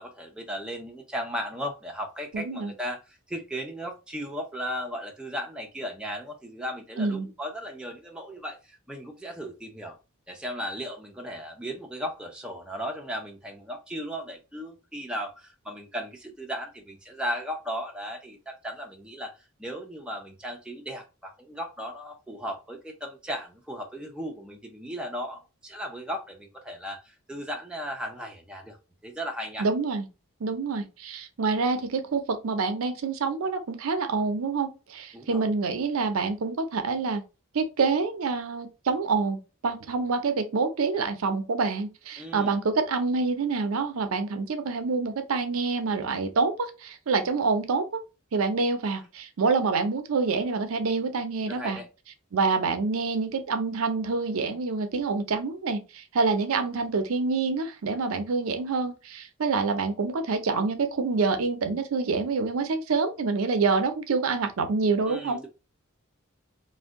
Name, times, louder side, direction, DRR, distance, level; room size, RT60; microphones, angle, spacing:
voice 1, 0.0-10.0 10.3-28.8 29.0-29.7 35.1-35.5 42.2-42.6 51.5-51.9 65.1-65.5, equal, 5° right, 0.4 m, -36 dB
voice 2, 2.3-2.7 7.0-7.3 29.6-30.1 30.4-37.2 37.5-48.0 48.3-51.8 52.3-55.8 56.1-65.4, right 4 dB, 80° right, 0.5 m, -27 dB
2.6 x 2.1 x 3.5 m
head